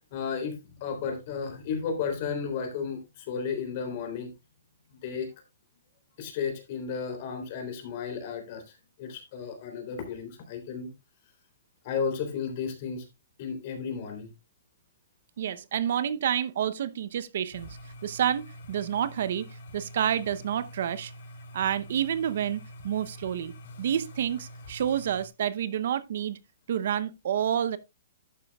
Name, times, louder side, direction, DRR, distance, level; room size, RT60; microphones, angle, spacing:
voice 1, 0.1-4.3 5.0-5.3 6.2-10.9 11.8-13.1 13.4-14.3, left 6 dB, 40° left, 3.5 m, -33 dB
voice 2, 15.4-17.7 18.0-21.1 21.5-26.4 26.7-27.8, right 9 dB, 60° right, 0.8 m, -29 dB
sound 1, 17.5-25.3, equal, 60° left, 3.7 m, -46 dB
11.0 x 8.9 x 2.3 m
hypercardioid pair, 160°, 0 cm